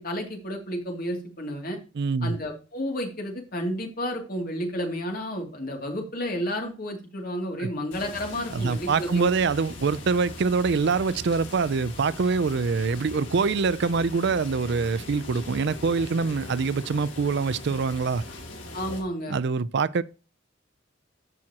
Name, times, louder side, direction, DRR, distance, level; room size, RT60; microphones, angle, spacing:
voice 1, 0.0-1.8 2.2-9.3 18.7-19.4, equal, 50° left, 2.6 m, -31 dB
voice 2, 2.0-2.3 7.6-7.7 8.5-18.2 19.3-20.0, right 4 dB, 60° right, 0.4 m, -25 dB
sound 1, 7.9-19.0, left 1 dB, 80° left, 5.1 m, -40 dB
14.0 x 6.0 x 2.9 m
head